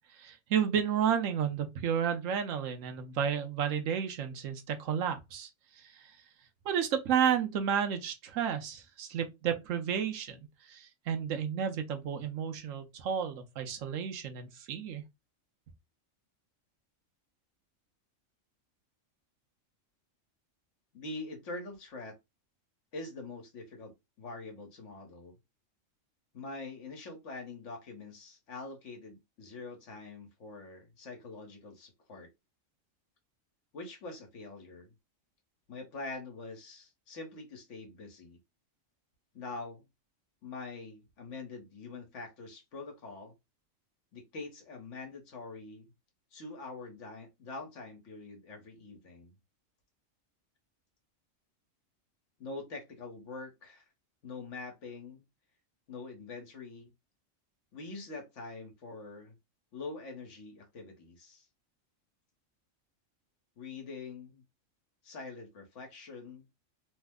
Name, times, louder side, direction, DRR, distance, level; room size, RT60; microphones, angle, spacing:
voice 1, 0.2-5.5 5.8-5.9 6.6-10.4 10.7-15.0, right 8 dB, 75° right, 1.1 m, -31 dB
voice 2, 20.9-22.2 22.9-25.3 26.3-32.3 33.7-34.9 35.7-38.4 39.3-39.9 40.4-43.3 44.1-45.8 46.3-49.3 52.4-53.9 54.2-55.2 55.9-56.9 57.7-59.3 59.7-61.5 63.6-64.4 65.0-66.5, left 3 dB, 65° left, 1.3 m, -44 dB
3.2 x 2.0 x 3.5 m
omnidirectional pair, 1.4 m